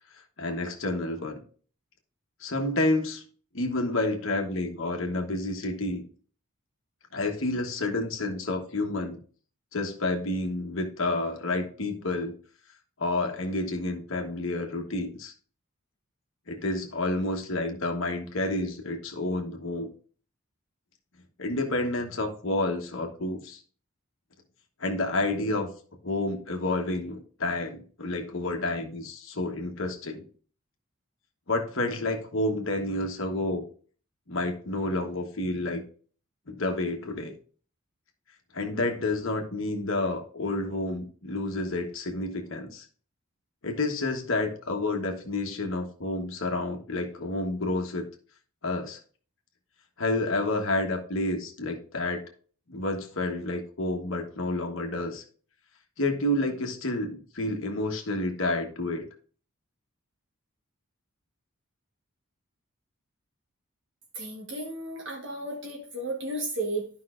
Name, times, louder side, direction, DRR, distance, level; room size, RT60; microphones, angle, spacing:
voice 1, 0.4-1.4 2.4-3.2 3.5-6.0 7.1-9.2 9.7-12.3 13.0-15.3 16.5-19.9 21.4-23.6 24.8-25.7 26.0-30.3 31.5-33.6 34.3-35.8 36.5-37.3 38.5-42.8 43.6-48.0 48.6-49.0 50.0-52.2 52.7-55.2 56.0-59.1, left 2 dB, 65° left, 3 dB, 1.2 m, -29 dB
voice 2, 64.1-66.9, right 2 dB, 55° right, -1 dB, 1.2 m, -33 dB
12.0 x 5.3 x 2.5 m, 0.42 s
head